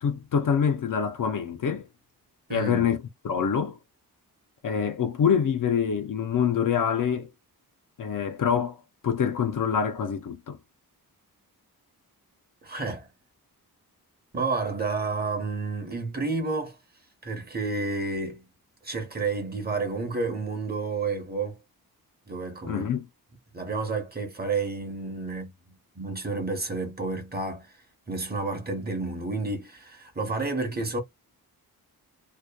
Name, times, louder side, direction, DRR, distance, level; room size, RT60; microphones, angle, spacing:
voice 1, 0.0-1.9 2.5-3.0 3.2-3.8 4.6-7.3 8.0-10.6 22.7-23.1, left 7 dB, 55° left, 0.5 m, -25 dB
voice 2, 2.5-2.9 12.6-13.1 14.3-16.8 17.2-18.4 18.8-21.6 22.3-22.9 23.5-25.5 25.9-27.7 28.1-31.0, right 3 dB, 25° right, 0.8 m, -30 dB
2.8 x 2.1 x 2.2 m
wide cardioid pair, 160°, 38 cm